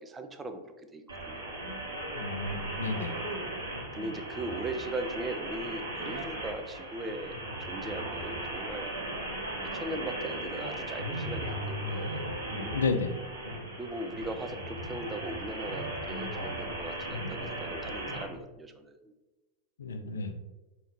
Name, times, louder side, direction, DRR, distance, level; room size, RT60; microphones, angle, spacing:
voice 1, 0.0-1.6 3.9-7.4 7.7-8.9 9.6-12.2 13.7-19.1, right 2 dB, 15° right, 7 dB, 0.4 m, -39 dB
sound 1, 1.1-18.2, right 1 dB, 75° right, 1.0 m, -37 dB
voice 2, 2.1-3.2 12.7-13.1 19.8-20.4, left 3 dB, 70° left, 8 dB, 0.4 m, -31 dB
4.4 x 2.7 x 3.5 m, 1.1 s
figure-of-eight pair, 90°, 0 cm